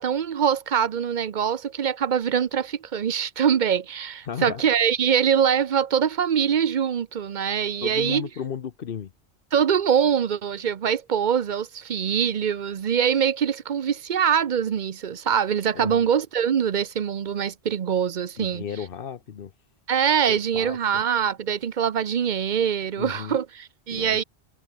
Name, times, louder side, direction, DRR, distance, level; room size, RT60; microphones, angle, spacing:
voice 1, 0.0-8.3 9.5-18.6 19.9-24.2, right 8 dB, 50° right, 0.7 m, -23 dB
voice 2, 4.2-4.6 7.8-9.1 15.7-16.0 18.4-19.5 20.3-20.8 23.0-23.4 23.9-24.2, left 8 dB, 55° left, 1.0 m, -34 dB
omnidirectional pair, 1.1 m